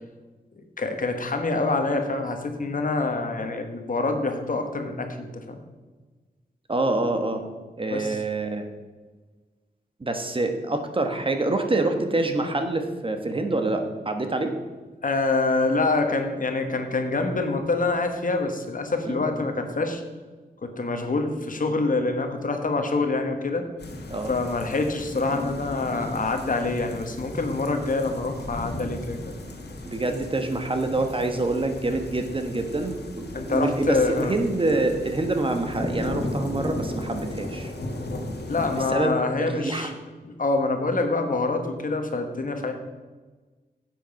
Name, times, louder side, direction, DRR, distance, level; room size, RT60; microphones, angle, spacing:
voice 1, 0.6-5.6 7.9-8.2 15.0-20.0 20.6-23.7 24.3-29.3 33.3-34.3 38.5-39.9 40.2-42.7, left 3 dB, 55° left, 5 dB, 1.3 m, -26 dB
voice 2, 6.7-7.4 7.8-8.7 10.0-14.5 19.0-19.2 24.1-24.3 29.8-37.7 38.9-39.9, right 2 dB, 30° right, 5 dB, 1.2 m, -26 dB
sound 1, 23.8-38.8, left 1 dB, 80° left, 1.7 m, -35 dB
10.5 x 7.8 x 5.2 m, 1.3 s
wide cardioid pair, 120°, 17 cm